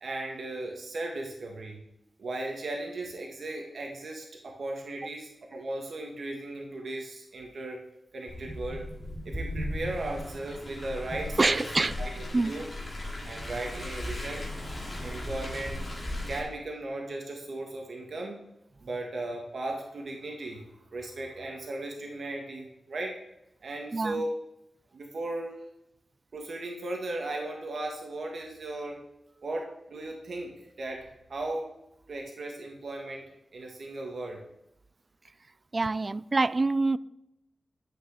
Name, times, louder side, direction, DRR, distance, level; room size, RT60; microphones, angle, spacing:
voice 1, 0.0-1.8 2.2-7.8 8.1-8.8 9.3-11.6 12.0-12.7 13.2-14.5 15.0-15.8 16.3-18.4 18.8-20.6 20.9-23.1 23.6-24.3 24.9-25.6 26.3-29.0 29.4-31.7 32.1-34.4, right 2 dB, 65° right, 1.8 m, -36 dB
Car, 8.3-16.4, left 1 dB, 20° left, 4.0 m, -37 dB
voice 2, 11.4-12.0 12.3-12.6 23.9-24.3 35.7-37.0, right 3 dB, 30° right, 0.3 m, -26 dB
12.0 x 8.5 x 5.0 m
wide cardioid pair, 140°, 0 cm